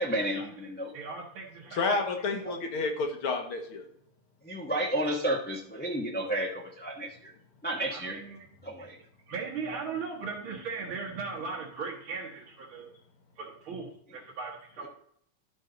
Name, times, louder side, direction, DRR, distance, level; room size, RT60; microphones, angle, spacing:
voice 1, 0.0-0.9 2.3-2.5 4.4-7.3 7.6-8.2 8.6-9.0, right 1 dB, 5° left, -2 dB, 0.8 m, -32 dB
voice 2, 0.9-1.8 2.1-2.2 7.9-8.4 8.8-9.0 9.3-12.9 13.4-14.9, right 4 dB, 70° right, -4 dB, 2.3 m, -38 dB
voice 3, 1.8-3.8, left 3 dB, 75° left, 3 dB, 2.4 m, -30 dB
12.5 x 5.4 x 4.0 m, 0.67 s
omnidirectional pair, 2.4 m